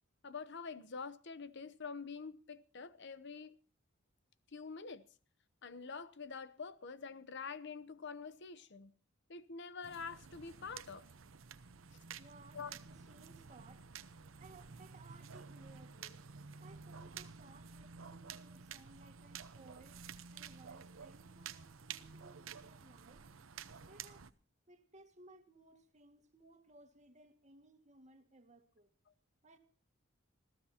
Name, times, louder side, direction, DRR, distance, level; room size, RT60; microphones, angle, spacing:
voice 1, 0.2-3.5 4.5-5.1 5.6-8.9 9.3-11.1 12.5-12.7, left 5 dB, 60° left, 0.9 m, -46 dB
sound 1, 9.8-24.3, right 6 dB, 80° right, 0.8 m, -51 dB
voice 2, 12.0-13.9 14.4-16.2 16.6-20.0 20.3-23.3 23.9-24.3 24.7-28.9 29.4-29.6, right 2 dB, 35° right, 1.9 m, -61 dB
26.5 x 15.0 x 2.8 m
head